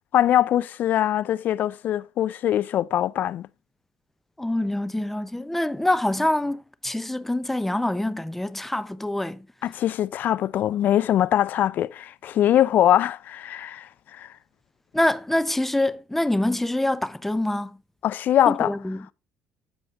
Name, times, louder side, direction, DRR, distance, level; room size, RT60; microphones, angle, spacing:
voice 1, 0.1-3.5 9.6-14.3 18.0-18.7, left 11 dB, 60° left, 0.5 m, -22 dB
voice 2, 4.4-9.5 14.9-17.8 18.5-19.1, left 1 dB, 5° left, 0.8 m, -25 dB
14.0 x 4.9 x 2.5 m
supercardioid pair, 80°, 4 cm